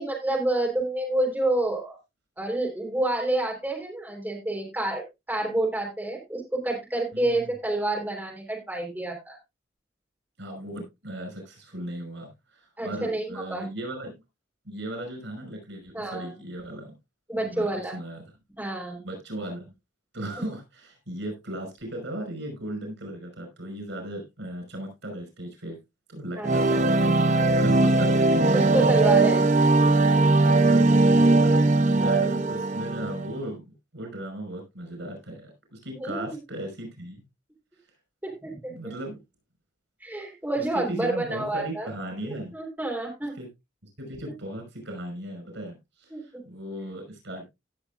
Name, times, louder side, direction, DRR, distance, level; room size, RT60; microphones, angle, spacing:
voice 1, 0.0-2.0 2.4-9.4 12.8-13.6 15.9-16.3 17.3-18.0 18.6-19.0 26.4-26.9 28.5-29.4 35.9-36.4 38.2-38.9 40.0-41.9 42.2-43.3 46.1-46.4, right 1 dB, 10° right, 3.6 m, -29 dB
voice 2, 7.1-7.5 10.4-14.2 14.7-16.9 17.4-18.2 19.0-19.7 20.1-25.8 26.1-28.7 30.4-33.6 33.9-37.2 38.7-39.2 40.6-42.6 43.4-43.5 44.0-47.5, right 1 dB, 90° right, 5.5 m, -37 dB
sound 1, 26.4-33.3, right 2 dB, 40° right, 0.6 m, -20 dB
17.0 x 7.0 x 2.4 m
head